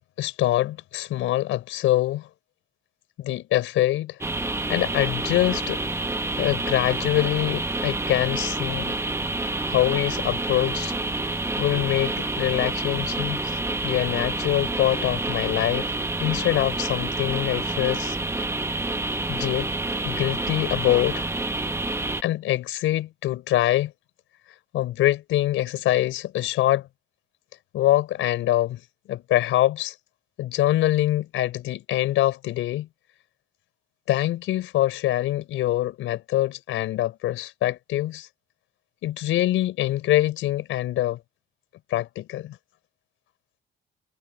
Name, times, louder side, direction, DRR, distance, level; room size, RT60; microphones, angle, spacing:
voice 1, 0.2-2.3 3.2-4.2 4.7-5.8 6.4-9.0 9.7-10.9 11.6-15.9 16.2-18.2 19.3-19.7 20.0-21.2 22.2-23.9 24.7-26.9 27.7-28.8 29.1-29.9 30.4-32.9 34.1-38.3 39.0-41.2 41.9-42.6, left 14 dB, 85° left, 5.0 m, -24 dB
sound 1, 4.2-22.2, right 2 dB, 15° right, 1.5 m, -28 dB
cardioid pair, 90°, 20 cm